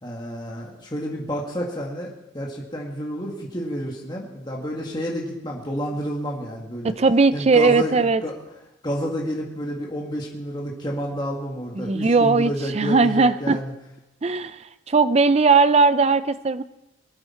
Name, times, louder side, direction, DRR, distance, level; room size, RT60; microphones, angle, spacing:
voice 1, 0.0-6.9 7.3-8.4 8.8-13.7, equal, 20° left, -2 dB, 1.9 m, -30 dB
voice 2, 6.8-8.2 11.8-13.6 14.2-14.6 14.9-16.6, right 4 dB, 30° right, 13 dB, 0.4 m, -18 dB
21.5 x 9.6 x 4.4 m, 0.97 s
head